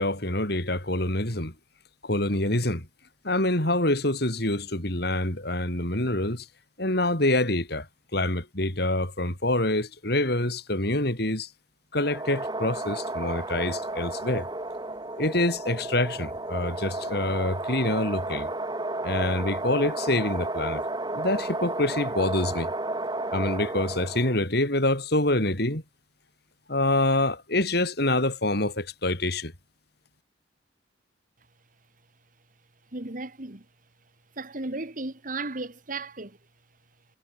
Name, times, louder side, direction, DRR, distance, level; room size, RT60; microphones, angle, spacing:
voice 1, 0.0-1.5 2.0-2.9 3.2-6.5 6.8-7.9 8.1-11.5 11.9-14.5 15.2-18.5 19.0-20.8 21.1-22.7 23.3-25.8 26.7-29.5, left 1 dB, 60° left, 7.1 m, -26 dB
sound 1, 12.0-24.4, right 2 dB, 25° right, 6.6 m, -32 dB
voice 2, 32.9-33.6 34.4-36.4, right 2 dB, 50° right, 2.1 m, -35 dB
head